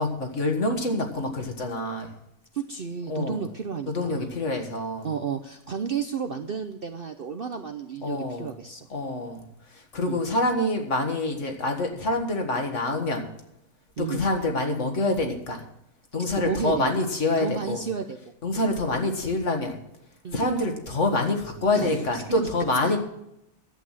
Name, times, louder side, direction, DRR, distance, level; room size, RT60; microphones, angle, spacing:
voice 1, 0.0-2.1 3.1-3.4 3.9-5.1 8.0-8.5 8.9-9.4 9.7-13.3 14.0-15.6 16.1-17.8 18.4-19.8 20.3-23.0, left 2 dB, 50° left, 4 dB, 2.1 m, -26 dB
voice 2, 2.5-4.3 5.0-8.9 10.0-10.2 14.0-14.2 16.2-16.9 17.4-18.2 18.6-18.8 20.2-20.5 21.7-22.5 22.8-23.0, right 6 dB, 50° right, 6 dB, 0.7 m, -32 dB
11.5 x 8.3 x 7.3 m, 0.81 s
omnidirectional pair, 1.6 m